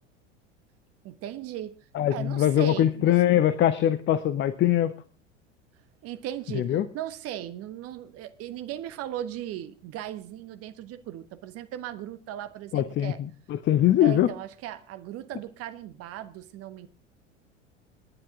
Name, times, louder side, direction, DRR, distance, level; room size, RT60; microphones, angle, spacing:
voice 1, 1.0-1.8 2.1-3.2 6.0-13.2 14.0-16.9, right 12 dB, 40° right, 1.4 m, -37 dB
voice 2, 1.9-4.9 6.5-6.8 12.7-14.3, left 12 dB, 30° left, 0.9 m, -22 dB
28.5 x 10.5 x 3.8 m
figure-of-eight pair, 75°, 36 cm